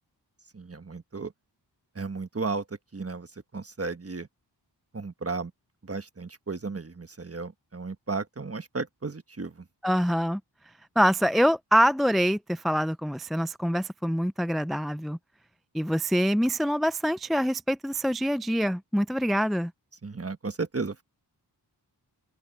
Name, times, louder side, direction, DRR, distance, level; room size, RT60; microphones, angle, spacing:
voice 1, 0.5-1.3 1.9-2.6 2.9-3.3 3.5-4.3 4.9-5.5 5.8-9.6 20.0-21.0, right 4 dB, 35° right, 1.3 m, -34 dB
voice 2, 9.8-10.4 11.0-15.2 15.7-19.7, equal, ahead, 0.3 m, -25 dB
open air
wide cardioid pair, 65°, 42 cm